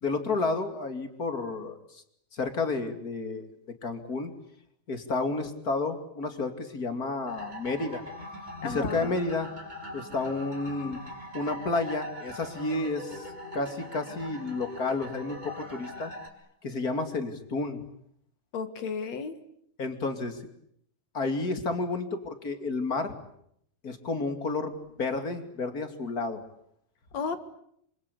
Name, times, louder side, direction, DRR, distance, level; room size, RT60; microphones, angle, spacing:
voice 1, 0.0-2.0 2.3-3.5 3.8-4.3 4.9-8.0 8.6-9.5 9.9-11.0 11.3-13.3 13.5-16.1 16.6-17.8 19.8-20.5 21.1-23.1 23.8-26.4, left 3 dB, 30° left, 7 dB, 2.7 m, -31 dB
sound 1, 7.3-16.3, left 1 dB, 10° right, 3.6 m, -41 dB
voice 2, 8.6-9.2 18.5-19.4 27.1-27.4, left 5 dB, 55° left, 10 dB, 2.8 m, -33 dB
26.5 x 26.5 x 8.4 m, 0.71 s
omnidirectional pair, 4.1 m